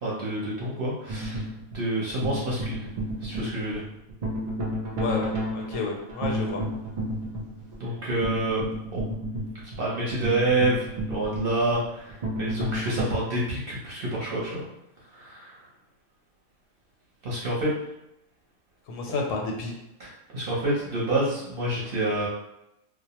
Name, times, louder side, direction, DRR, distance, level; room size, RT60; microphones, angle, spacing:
voice 1, 0.0-1.5 1.7-2.9 3.2-3.8 7.8-8.6 8.9-9.0 9.8-14.6 15.1-15.6 17.2-17.7 19.1-19.2 20.0-22.3, right 1 dB, 50° right, -6 dB, 0.8 m, -28 dB
sound 1, 1.1-13.0, right 1 dB, 65° right, 0.4 m, -32 dB
voice 2, 4.9-6.6 18.9-19.7, left 3 dB, 80° left, 0 dB, 1.0 m, -30 dB
2.3 x 2.0 x 2.8 m, 0.83 s
omnidirectional pair, 1.4 m